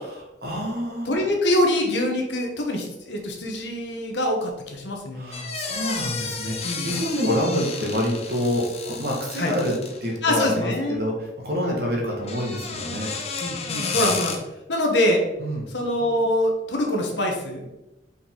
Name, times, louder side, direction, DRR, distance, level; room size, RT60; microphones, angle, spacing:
voice 1, 0.0-1.2 5.1-13.1 15.4-15.7, equal, 55° right, -2 dB, 1.8 m, -27 dB
voice 2, 1.1-5.5 6.6-6.9 9.4-9.5 10.2-11.0 11.6-11.8 13.4-14.3 14.7-15.2 15.7-17.6, left 1 dB, 75° left, 1 dB, 1.2 m, -24 dB
sound 1, 5.3-10.1 12.1-14.4, left 5 dB, 35° left, 0.7 m, -32 dB
5.3 x 4.6 x 3.9 m, 0.98 s
head